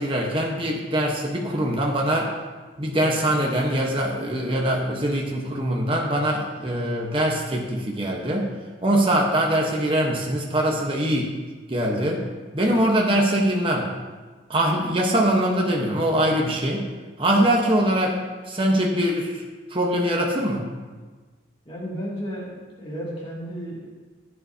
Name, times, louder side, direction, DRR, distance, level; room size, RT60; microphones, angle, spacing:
voice 1, 0.0-2.3 2.8-8.5 8.8-11.3 11.7-12.2 12.5-13.9 14.5-16.9 17.2-18.2 18.5-19.4 19.7-20.7, right 1 dB, 25° right, -1 dB, 1.1 m, -22 dB
voice 2, 21.6-23.8, equal, 30° left, -6 dB, 2.4 m, -33 dB
15.5 x 9.0 x 2.8 m, 1.4 s
head